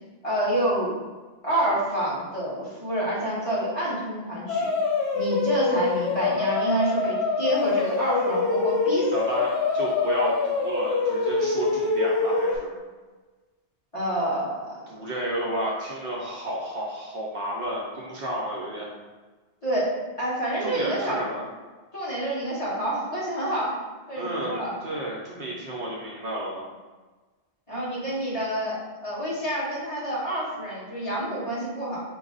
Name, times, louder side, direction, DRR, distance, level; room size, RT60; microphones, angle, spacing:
voice 1, 0.2-1.0 1.4-4.7 5.1-9.4 13.9-14.8 19.6-21.2 21.9-23.7 24.1-24.8 27.7-32.0, right 1 dB, 30° left, -10 dB, 1.6 m, -28 dB
sound 1, 4.5-12.6, left 4 dB, 75° left, 0.9 m, -25 dB
voice 2, 9.1-12.7 14.9-18.9 20.6-21.4 24.1-26.6, right 1 dB, 60° right, -3 dB, 0.9 m, -31 dB
4.6 x 2.3 x 3.9 m, 1.3 s
omnidirectional pair, 1.1 m